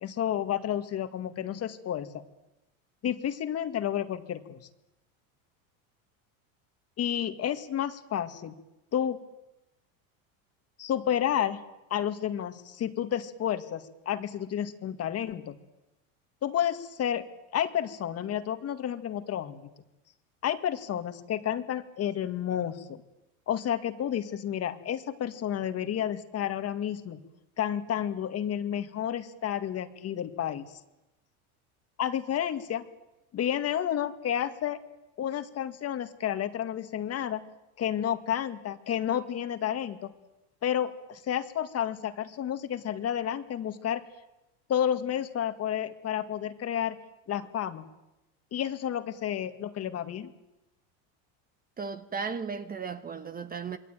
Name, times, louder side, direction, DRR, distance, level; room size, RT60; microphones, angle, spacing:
voice 1, 0.0-2.2 3.0-4.6 7.0-8.5 8.9-9.2 10.8-11.6 11.9-15.6 16.4-17.2 17.5-19.6 20.4-23.0 23.5-27.2 27.6-30.7 32.0-32.8 33.3-34.8 35.2-37.4 37.8-40.1 40.6-44.0 44.7-47.0 47.3-47.9 48.5-50.3, left 10 dB, 35° left, 2.1 m, -31 dB
voice 2, 51.8-53.8, right 5 dB, 20° right, 1.2 m, -35 dB
27.0 x 22.5 x 9.1 m
supercardioid pair, 125°, 42 cm